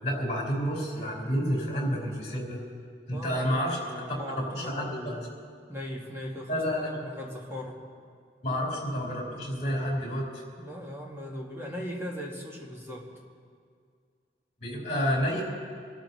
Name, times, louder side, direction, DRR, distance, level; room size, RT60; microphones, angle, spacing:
voice 1, 0.0-2.6 3.1-3.8 4.5-5.1 6.5-6.9 8.4-10.3 14.6-15.4, equal, 40° left, -4 dB, 5.1 m, -29 dB
voice 2, 3.1-5.3 5.7-6.6 7.0-7.8 10.6-13.1, equal, 15° right, -3 dB, 2.0 m, -38 dB
27.5 x 13.0 x 3.3 m, 2.1 s
head